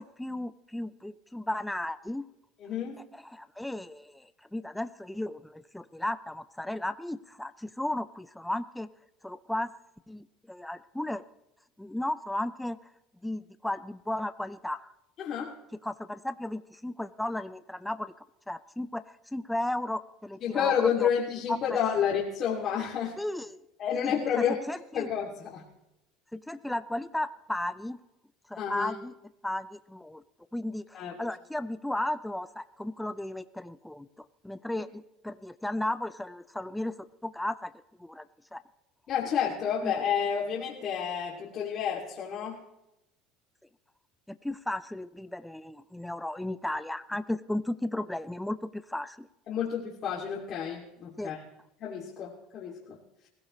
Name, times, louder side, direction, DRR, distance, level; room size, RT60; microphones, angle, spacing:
voice 1, 0.0-2.2 3.1-8.9 9.2-9.7 10.1-11.2 11.8-12.8 13.2-14.9 15.8-18.1 18.5-20.7 21.0-21.1 21.5-21.8 23.2-23.6 24.0-25.1 26.3-28.0 28.5-29.1 29.4-30.2 30.5-34.1 34.4-37.7 38.0-38.3 38.5-38.6 39.8-40.0 44.3-49.3 51.2-51.3, left 1 dB, 5° left, 12 dB, 0.6 m, -35 dB
voice 2, 2.6-3.0 15.2-15.5 20.4-23.2 23.8-24.6 24.9-25.6 28.6-28.9 30.9-31.1 39.1-42.6 49.5-51.4 51.8-53.0, left 8 dB, 40° left, -5 dB, 2.7 m, -30 dB
21.5 x 16.0 x 3.2 m, 0.88 s
cardioid pair, 130°, 0 cm